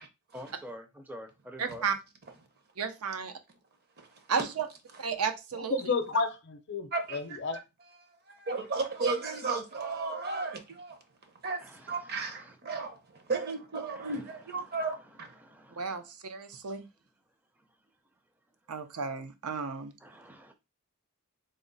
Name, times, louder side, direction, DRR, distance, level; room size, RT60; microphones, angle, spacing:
voice 1, 0.3-1.9 11.6-12.6 13.9-14.2 14.7-14.8 15.4-16.0 20.0-20.5, equal, 10° right, 0.4 m, -47 dB
voice 2, 1.6-2.0 2.8-3.3 4.3-4.7 5.0-5.8 15.8-16.9 18.7-19.9, right 6 dB, 90° right, 0.6 m, -33 dB
voice 3, 5.5-7.6, left 4 dB, 50° left, 0.5 m, -31 dB
voice 4, 6.9-7.2 8.3-11.0 11.4-11.6 11.9-15.3, right 4 dB, 45° right, 0.7 m, -34 dB
3.7 x 2.1 x 3.9 m
head